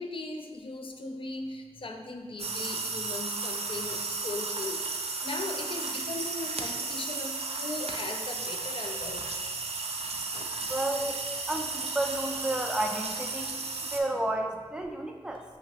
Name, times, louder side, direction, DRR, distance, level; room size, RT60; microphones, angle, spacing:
voice 1, 0.0-4.8 5.2-9.2 10.3-10.5, left 2 dB, 50° left, 3 dB, 0.4 m, -38 dB
sound 1, 2.4-14.0, right 3 dB, 65° right, 0.4 m, -34 dB
voice 2, 10.6-15.4, right 1 dB, 5° right, 2 dB, 0.4 m, -32 dB
5.5 x 2.8 x 2.9 m, 1.4 s
wide cardioid pair, 70°, 11 cm